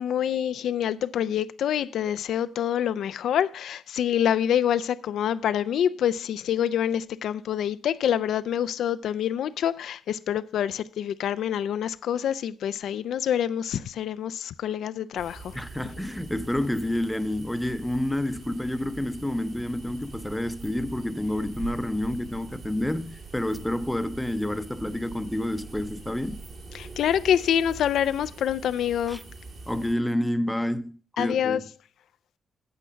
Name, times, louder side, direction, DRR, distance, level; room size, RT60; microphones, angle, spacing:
voice 1, 0.0-15.6 26.7-29.2 31.2-31.6, left 9 dB, 85° left, 0.4 m, -26 dB
sound 1, 15.2-29.9, right 4 dB, 55° right, 2.4 m, -43 dB
voice 2, 15.5-26.4 29.1-29.2 29.7-31.6, left 1 dB, 5° left, 0.6 m, -29 dB
8.5 x 7.9 x 5.6 m
cardioid pair, 105°, 0 cm